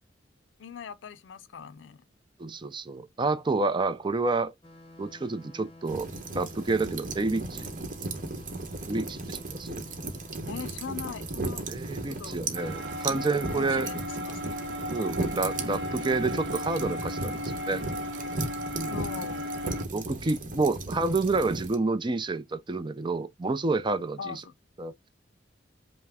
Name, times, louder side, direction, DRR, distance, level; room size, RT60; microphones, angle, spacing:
voice 1, 0.6-2.0 10.5-11.8 12.1-12.4 13.1-13.2 13.5-14.6 18.9-19.5 24.2-24.5, left 6 dB, 80° left, 0.4 m, -40 dB
voice 2, 2.4-4.5 5.0-6.1 6.3-7.7 8.8-9.9 11.7-13.9 14.9-17.8 18.7-18.9 19.9-24.4 24.8-25.1, right 3 dB, 25° right, 0.5 m, -29 dB
sound 1, 4.6-20.0, left 2 dB, 30° left, 0.9 m, -51 dB
sound 2, 5.9-21.8, right 2 dB, 45° right, 1.0 m, -36 dB
sound 3, 12.5-19.8, left 1 dB, 70° right, 0.7 m, -36 dB
5.6 x 2.1 x 3.4 m
head